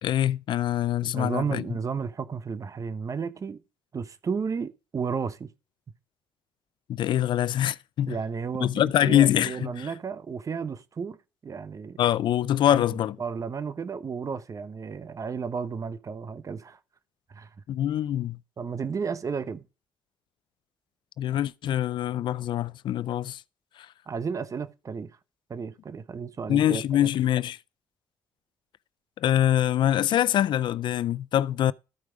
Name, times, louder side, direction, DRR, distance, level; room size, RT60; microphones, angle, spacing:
voice 1, 0.0-1.6 6.9-8.2 8.6-9.9 12.0-13.2 17.7-18.4 21.2-23.4 26.5-27.6 29.2-31.7, left 11 dB, 60° left, 0.4 m, -24 dB
voice 2, 1.0-3.6 3.9-5.5 8.1-11.2 11.4-12.0 12.7-16.8 17.3-17.5 18.6-19.6 24.1-25.1 25.5-27.1, right 6 dB, 40° right, 0.9 m, -33 dB
13.0 x 4.7 x 5.0 m
supercardioid pair, 75°, 9 cm